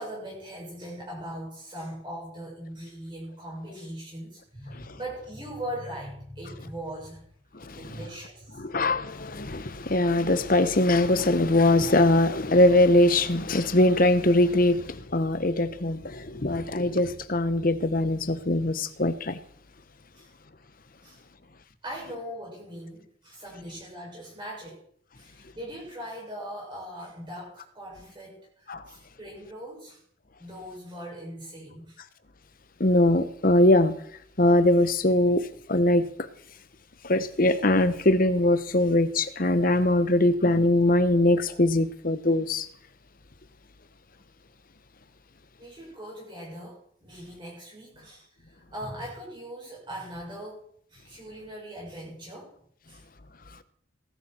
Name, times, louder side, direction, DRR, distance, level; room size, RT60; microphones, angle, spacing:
voice 1, 0.0-7.3 7.7-8.6 20.1-20.3 21.0-21.2 21.8-24.8 25.1-30.0 30.4-32.0 45.6-50.6 50.9-52.5 52.9-53.0, equal, 25° right, 6.7 m, -40 dB
voice 2, 7.5-7.9 8.6-19.4 28.7-28.8 32.8-34.0 34.4-36.3 37.0-42.7, left 1 dB, 45° left, 1.1 m, -22 dB
19.5 x 13.0 x 4.5 m
head